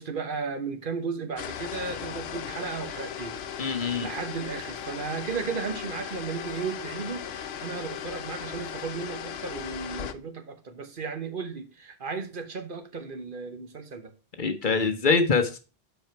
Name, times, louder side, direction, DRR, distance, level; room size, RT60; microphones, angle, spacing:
voice 1, 0.0-3.4 3.8-14.1, right 5 dB, 55° right, 1.1 m, -35 dB
sound 1, 1.4-10.1, left 8 dB, 85° left, 0.9 m, -37 dB
voice 2, 3.6-4.1 14.4-15.6, left 4 dB, 55° left, 1.1 m, -24 dB
7.5 x 5.0 x 4.5 m
omnidirectional pair, 1.0 m